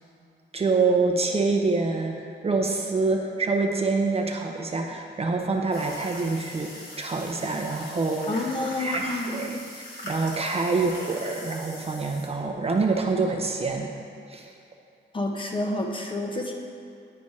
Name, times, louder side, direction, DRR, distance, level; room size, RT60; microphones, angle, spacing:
voice 1, 0.5-8.3 8.8-13.9 14.3-14.5, right 3 dB, 30° right, 2 dB, 0.5 m, -26 dB
sound 1, 5.7-12.3, left 1 dB, 50° left, 1.8 m, -40 dB
voice 2, 8.3-9.6 15.1-16.5, left 2 dB, 25° left, 1 dB, 0.6 m, -29 dB
9.5 x 3.3 x 5.4 m, 2.5 s
wide cardioid pair, 170°, 20 cm